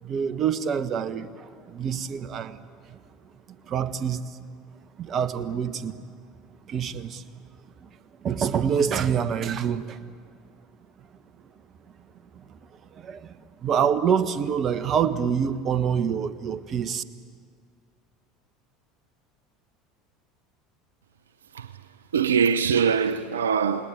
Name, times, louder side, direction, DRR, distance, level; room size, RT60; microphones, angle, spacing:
voice 1, 0.0-3.0 3.7-4.4 5.0-6.0 6.7-7.2 7.8-7.9 8.2-10.0 11.0-11.1 12.3-17.0, right 7 dB, 40° right, 1.3 m, -27 dB
voice 2, 22.1-23.9, right 6 dB, 85° right, 0.6 m, -23 dB
29.0 x 19.5 x 8.9 m
hypercardioid pair, 75°, 0 cm